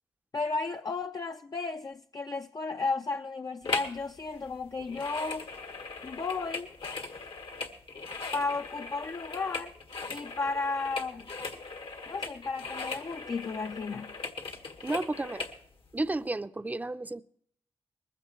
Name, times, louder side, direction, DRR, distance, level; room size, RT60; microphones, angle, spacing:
voice 1, 0.3-5.5 6.0-6.7 8.3-9.7 10.1-11.3 12.1-14.1, left 4 dB, 40° left, 0.5 m, -33 dB
sound 1, 3.6-4.0 4.3-15.6 16.1-16.2, left 3 dB, 70° left, 1.5 m, -39 dB
voice 2, 14.8-15.5 15.9-17.2, right 2 dB, 15° right, 0.6 m, -32 dB
20.0 x 15.0 x 3.1 m
cardioid pair, 65°, 9 cm